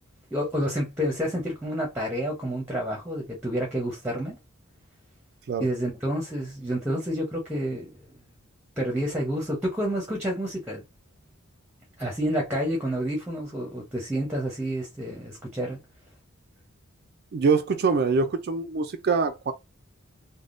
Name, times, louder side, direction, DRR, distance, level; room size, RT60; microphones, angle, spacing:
voice 1, 0.3-4.4 5.6-7.9 8.8-10.8 12.0-15.8, equal, 10° right, 0.7 m, -29 dB
voice 2, 17.3-19.5, right 4 dB, 45° right, 0.4 m, -24 dB
3.4 x 2.2 x 2.5 m
head